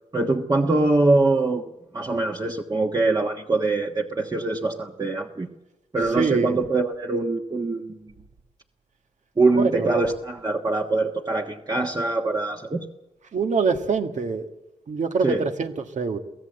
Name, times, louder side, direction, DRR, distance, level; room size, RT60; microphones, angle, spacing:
voice 1, 0.1-1.6 1.9-5.5 5.9-8.1 9.4-12.9 15.2-15.4, right 2 dB, 30° right, 1 dB, 1.3 m, -23 dB
voice 2, 6.2-6.6 9.5-9.9 13.3-14.5 14.9-16.2, right 5 dB, 70° right, 6 dB, 1.8 m, -24 dB
23.5 x 16.0 x 8.1 m, 1.0 s
cardioid pair, 75°, 13 cm